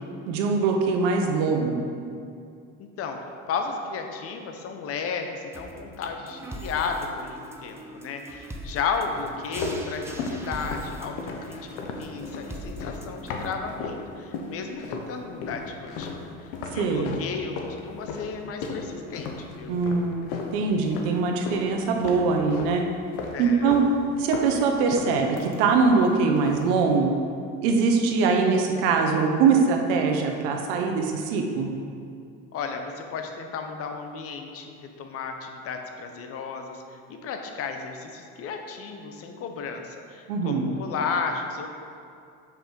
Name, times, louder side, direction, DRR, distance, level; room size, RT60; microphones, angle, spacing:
voice 1, 0.3-1.9 16.7-17.2 19.7-20.3 20.5-22.8 23.4-23.8 24.2-27.1 27.6-31.7 40.3-40.7, right 4 dB, 80° right, 2 dB, 1.0 m, -22 dB
voice 2, 2.8-3.2 3.5-11.2 11.4-16.3 16.7-19.8 23.3-23.7 32.5-36.8 37.1-41.7, left 5 dB, 50° left, 5 dB, 0.9 m, -33 dB
sound 1, 5.5-13.5, right 1 dB, 10° right, 0.7 m, -41 dB
sound 2, 9.2-14.0 14.3-15.1 15.4-21.7 22.0-22.8 23.1-23.9 24.2-26.0 26.4-26.7, left 4 dB, 75° left, 0.9 m, -35 dB
6.1 x 4.7 x 5.3 m, 2.4 s
supercardioid pair, 105°, 30 cm